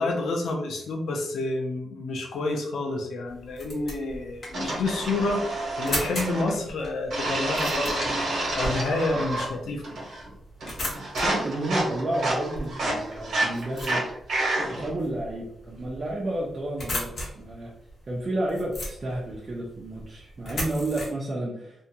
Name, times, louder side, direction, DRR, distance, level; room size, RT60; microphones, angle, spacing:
voice 1, 0.0-8.2 8.6-9.8, left 2 dB, 85° left, 1 dB, 0.6 m, -29 dB
sound 1, 3.3-21.1, left 1 dB, 55° left, 1.2 m, -38 dB
sound 2, 4.5-6.6 7.1-9.6 9.8-10.3 10.6-14.9, right 1 dB, 75° right, 1.0 m, -29 dB
voice 2, 11.2-14.0 14.7-17.7 18.1-21.8, right 1 dB, 35° right, -5 dB, 0.6 m, -31 dB
2.7 x 2.2 x 2.7 m, 0.73 s
cardioid pair, 95°, 0 cm